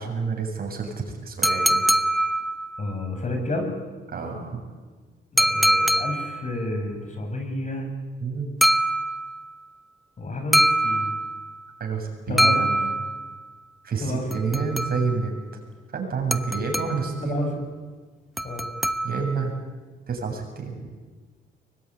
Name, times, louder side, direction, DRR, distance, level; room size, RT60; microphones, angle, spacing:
voice 1, 0.0-1.8 4.1-4.6 8.2-8.5 11.8-12.9 13.8-15.3 15.9-17.5 19.0-19.5 20.1-20.8, right 5 dB, 50° right, 2 dB, 7.8 m, -28 dB
sound 1, 1.4-2.9 5.4-6.5 8.6-9.5 10.5-11.6 12.4-13.4 14.3-15.3 16.3-17.2 18.4-19.5, right 1 dB, ahead, 1.0 m, -23 dB
voice 2, 2.8-3.7 5.3-7.9 10.2-11.1 12.3-12.6 14.0-14.6 17.2-17.6 18.4-18.7, left 2 dB, 40° left, 4 dB, 6.7 m, -30 dB
23.5 x 21.5 x 9.9 m, 1.4 s
cardioid pair, 90°, 20 cm